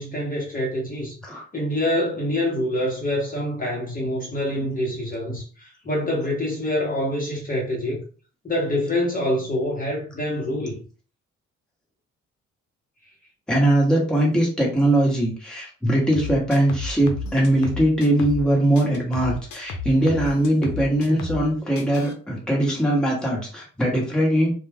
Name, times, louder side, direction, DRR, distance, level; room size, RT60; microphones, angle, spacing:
voice 1, 0.0-8.0 8.4-10.8, left 1 dB, 30° left, 1.0 m, -26 dB
voice 2, 13.5-24.5, right 1 dB, 5° left, 1.1 m, -21 dB
sound 1, 16.1-18.5 18.8-21.5 21.8-22.1, left 3 dB, 70° left, 0.6 m, -33 dB
2.3 x 2.2 x 3.4 m
cardioid pair, 90°, 30 cm